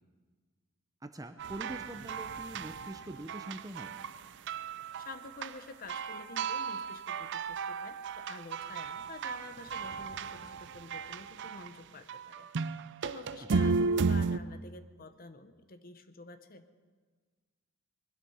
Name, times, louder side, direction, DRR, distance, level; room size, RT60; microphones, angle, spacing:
voice 1, 1.0-3.9 13.4-13.5, right 1 dB, 15° right, 8 dB, 0.7 m, -44 dB
sound 1, 1.4-4.2 4.5-5.6 5.9-11.7 12.1-14.4, right 4 dB, 55° right, 0.5 m, -34 dB
voice 2, 5.0-16.6, left 3 dB, 45° left, 10 dB, 0.9 m, -49 dB
21.0 x 12.0 x 5.7 m, 1.5 s
head